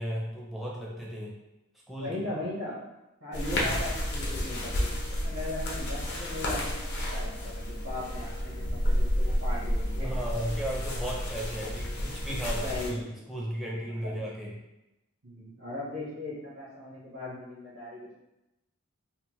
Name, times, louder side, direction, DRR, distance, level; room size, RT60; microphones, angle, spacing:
voice 1, 0.0-1.3 1.9-2.2 3.6-3.7 10.0-13.0 13.3-14.5, equal, ahead, -5 dB, 0.4 m, -35 dB
voice 2, 1.9-2.8 3.2-10.1 12.6-13.2 14.0-14.1 15.2-18.1, left 2 dB, 85° right, -8 dB, 0.9 m, -38 dB
sound 1, 3.3-12.9, equal, 50° left, 0.6 m, -31 dB
2.8 x 2.0 x 2.9 m, 0.93 s
head